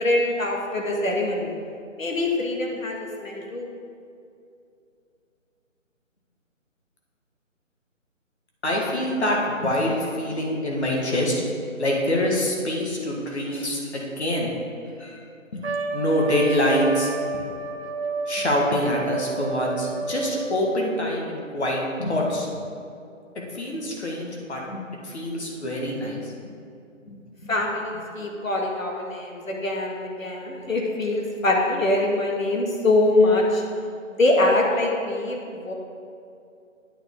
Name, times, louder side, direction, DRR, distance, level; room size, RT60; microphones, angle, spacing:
voice 1, 0.0-1.5 2.0-3.7 27.5-33.6 34.1-35.7, left 2 dB, 80° left, -1 dB, 1.9 m, -23 dB
voice 2, 8.6-11.4 11.8-14.5 15.0-15.2 15.5-15.6 15.9-17.1 18.3-22.6 23.3-26.3 27.1-27.5, left 1 dB, 55° left, -2 dB, 1.7 m, -25 dB
Trumpet, 15.6-20.6, right 3 dB, 55° right, 0.5 m, -30 dB
9.0 x 7.9 x 3.7 m, 2.5 s
figure-of-eight pair, 165°, 40 cm